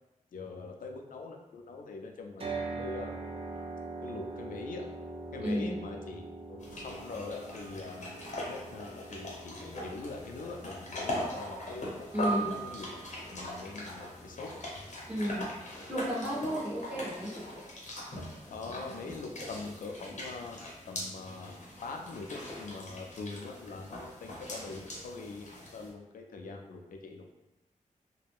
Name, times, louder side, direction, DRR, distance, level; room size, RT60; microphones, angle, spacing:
voice 1, 0.3-3.2 4.0-4.9 5.3-6.2 6.5-11.9 12.2-12.9 13.3-15.1 18.5-27.4, left 3 dB, 85° left, 3 dB, 0.4 m, -43 dB
sound 1, 2.4-16.5, right 3 dB, 45° right, 0.5 m, -44 dB
voice 2, 5.4-5.7 12.1-12.5 15.1-15.5 15.9-17.3, equal, 10° right, -9 dB, 1.3 m, -32 dB
sound 2, 6.6-25.9, equal, 60° left, 0.8 m, -41 dB
2.4 x 2.1 x 3.4 m, 0.99 s
wide cardioid pair, 90°, 14 cm